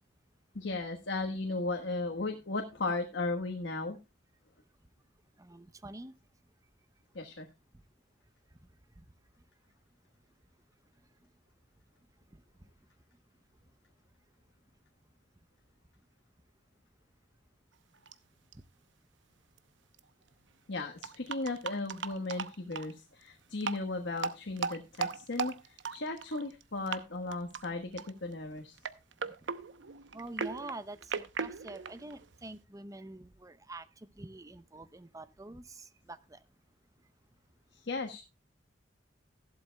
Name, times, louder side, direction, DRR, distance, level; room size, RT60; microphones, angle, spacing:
voice 1, 0.5-4.0 7.1-7.5 20.7-28.8 37.7-38.2, left 3 dB, 80° left, 1.4 m, -36 dB
voice 2, 5.4-6.1 9.0-9.1 12.3-12.4 29.2-29.3 30.1-36.4, right 2 dB, 20° right, 0.7 m, -46 dB
sound 1, 18.1-18.2 18.5-18.6 19.6-19.7 19.9-20.0 21.0-22.9 23.6-23.8 24.2-26.6 26.9-27.0 27.3-27.7 28.0-28.3 28.8-32.6, right 5 dB, 85° right, 0.8 m, -38 dB
14.5 x 12.0 x 2.3 m
head